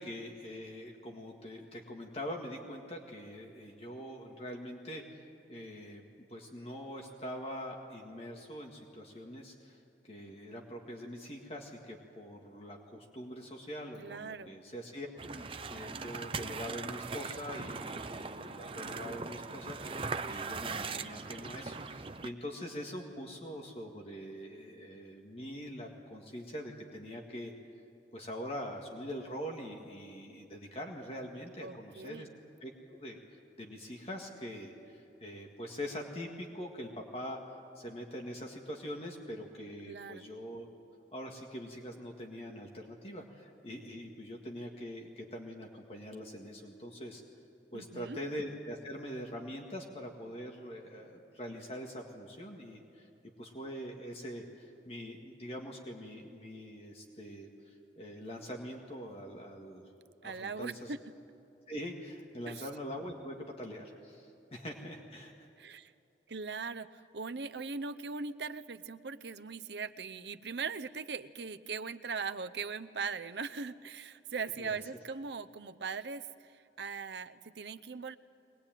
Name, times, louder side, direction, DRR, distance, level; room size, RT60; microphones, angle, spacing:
voice 1, 0.0-6.0 6.3-15.1 15.3-27.5 28.1-32.3 32.6-40.7 41.1-47.2 47.7-53.1 53.4-59.9 60.2-60.9 61.7-65.5 74.6-74.8, equal, 35° left, 0 dB, 1.9 m, -43 dB
voice 2, 14.0-14.5 31.6-32.3 39.9-40.3 47.7-48.2 60.2-61.0 62.5-62.6 65.6-65.9 66.3-66.9 67.1-76.3 76.8-78.2, right 5 dB, 80° right, 11 dB, 0.7 m, -40 dB
sound 1, 15.2-22.3, right 4 dB, 30° right, 0.6 m, -40 dB
22.5 x 20.0 x 9.1 m, 2.7 s
head